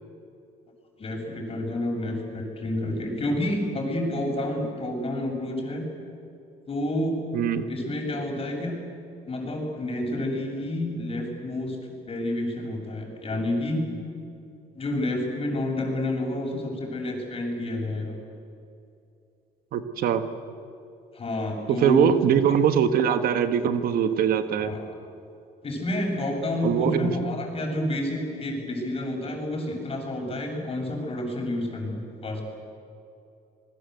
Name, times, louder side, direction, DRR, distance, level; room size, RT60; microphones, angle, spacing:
voice 1, 1.0-5.9 6.7-7.2 7.7-8.8 9.3-13.9 14.7-18.2 21.1-22.2 24.6-25.0 25.6-32.4, left 1 dB, 35° left, 2 dB, 7.2 m, -29 dB
voice 2, 7.3-7.7 19.7-20.2 21.7-24.7 26.6-27.1, right 8 dB, 70° right, 10 dB, 1.5 m, -22 dB
28.0 x 21.5 x 8.1 m, 2.6 s
cardioid pair, 90°, 16 cm